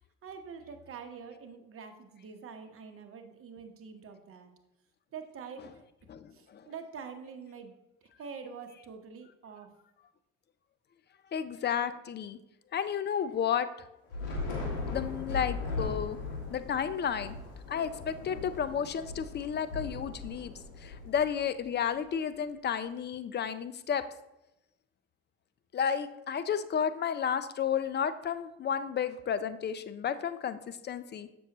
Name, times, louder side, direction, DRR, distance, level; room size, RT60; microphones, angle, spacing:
voice 1, 0.2-4.5 5.1-5.7 6.3-7.7 8.2-9.7, right 6 dB, 45° right, 6 dB, 1.0 m, -45 dB
voice 2, 6.1-6.6 11.3-12.4 12.7-13.7 14.9-16.2 16.5-17.4 17.7-20.5 20.8-24.0 25.7-31.3, left 8 dB, 35° left, 13 dB, 0.5 m, -32 dB
Thunder / Rain, 14.1-21.6, left 3 dB, 80° left, 1.4 m, -38 dB
7.0 x 6.2 x 2.9 m, 0.91 s
hypercardioid pair, 60°, 31 cm